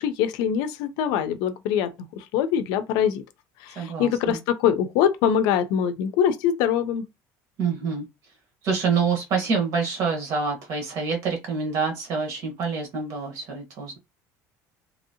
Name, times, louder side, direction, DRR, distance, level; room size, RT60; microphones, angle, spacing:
voice 1, 0.0-1.9 2.2-3.2 3.6-7.1, left 9 dB, 75° left, 0.5 m, -23 dB
voice 2, 3.7-4.4 7.6-8.1 8.6-14.0, right 5 dB, 50° right, 1.2 m, -26 dB
2.9 x 2.7 x 2.7 m
cardioid pair, 165°, 7 cm